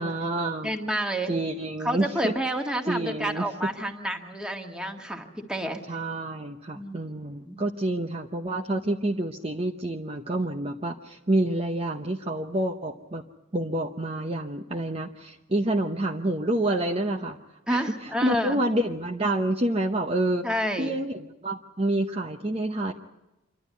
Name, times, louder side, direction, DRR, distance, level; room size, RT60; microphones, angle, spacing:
voice 1, 0.0-0.7 1.3-2.3 2.9-3.7 5.9-13.2 13.5-17.4 17.7-20.5 20.8-22.9, right 1 dB, 30° right, 3 dB, 0.8 m, -28 dB
voice 2, 0.6-1.3 1.8-5.8 6.7-7.0 7.4-7.6 17.7-18.6 20.4-20.9, equal, 5° right, 3 dB, 1.7 m, -29 dB
26.5 x 12.0 x 9.4 m, 1.0 s
head